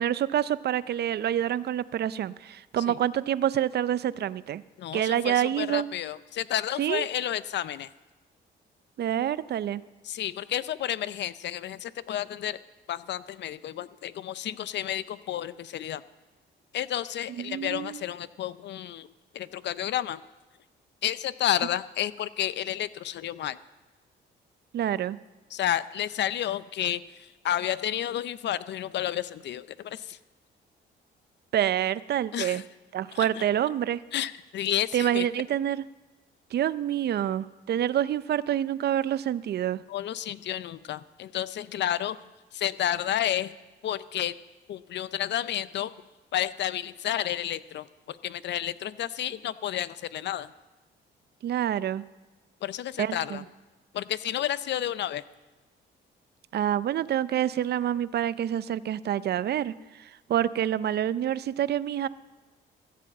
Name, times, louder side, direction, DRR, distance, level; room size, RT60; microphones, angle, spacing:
voice 1, 0.0-4.6 4.9-5.9 6.8-7.1 9.0-9.8 17.4-18.0 24.7-25.2 31.5-32.6 32.9-34.0 34.9-35.8 36.5-39.8 51.4-52.0 53.0-53.4 56.5-62.1, right 11 dB, 55° right, 17 dB, 0.5 m, -27 dB
voice 2, 4.8-7.9 10.0-12.6 12.9-16.0 16.7-19.1 19.3-20.2 21.0-23.6 25.5-30.2 32.3-32.6 33.1-33.5 34.1-35.3 39.9-42.2 42.5-43.5 43.8-44.4 44.7-45.9 46.3-50.5 52.6-53.4 53.9-55.2, left 11 dB, 60° left, 16 dB, 0.5 m, -31 dB
14.5 x 7.6 x 7.6 m, 1.2 s
cardioid pair, 90°, 20 cm